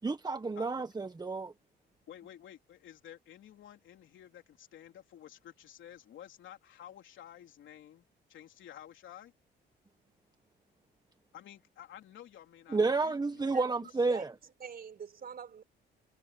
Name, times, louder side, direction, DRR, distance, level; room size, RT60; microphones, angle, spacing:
voice 1, 0.0-1.5 12.7-14.3, right 3 dB, 20° right, 1.3 m, -30 dB
voice 2, 0.6-0.9 2.1-8.0 8.3-9.3 11.3-13.9, left 11 dB, 75° left, 3.6 m, -52 dB
voice 3, 14.1-15.6, right 7 dB, 50° right, 4.9 m, -45 dB
cardioid pair, 90°, 20 cm